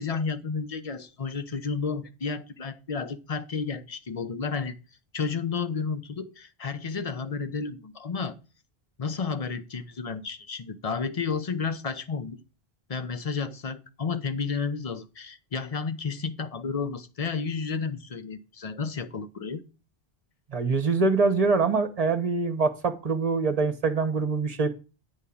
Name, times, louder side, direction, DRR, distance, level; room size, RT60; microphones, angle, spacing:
voice 1, 0.0-4.7 5.1-8.4 9.0-12.4 12.9-19.6, left 5 dB, 40° left, 0.8 m, -32 dB
voice 2, 20.5-24.7, right 4 dB, 40° right, 1.1 m, -24 dB
9.8 x 3.7 x 6.9 m
omnidirectional pair, 1.1 m